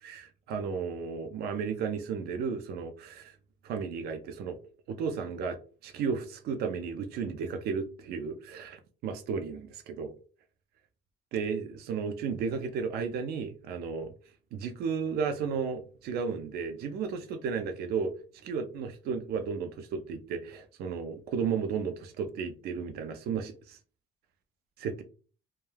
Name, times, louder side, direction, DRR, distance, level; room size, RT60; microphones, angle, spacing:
voice 1, 0.0-3.3 3.6-4.6 4.9-10.1 11.3-14.1 14.5-18.1 18.4-23.8 24.8-25.0, right 6 dB, 70° right, 0.4 m, -34 dB
2.2 x 2.2 x 3.2 m
cardioid pair, 110°, 17 cm